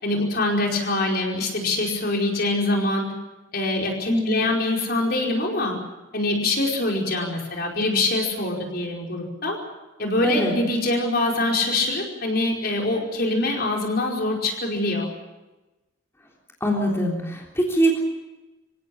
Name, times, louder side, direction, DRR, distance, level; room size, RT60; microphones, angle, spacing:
voice 1, 0.0-3.1 3.5-5.8 6.1-9.6 10.0-15.1, left 2 dB, 50° left, 0 dB, 5.0 m, -24 dB
voice 2, 4.1-4.4 10.2-10.5 16.6-18.0, right 1 dB, 15° left, -2 dB, 3.5 m, -22 dB
26.5 x 17.0 x 8.6 m, 1.1 s
head